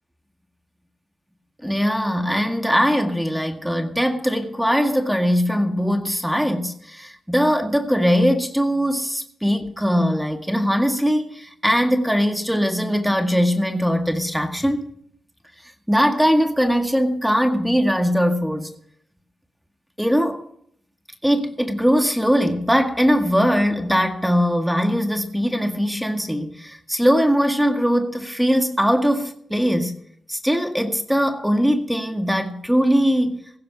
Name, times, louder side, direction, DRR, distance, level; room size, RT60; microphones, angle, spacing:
voice 1, 1.6-14.9 15.9-18.7 20.0-20.5 21.2-30.0 30.3-33.4, equal, ahead, 1.9 m, -20 dB
18.0 x 15.0 x 2.9 m
cardioid pair, 60°, 0 cm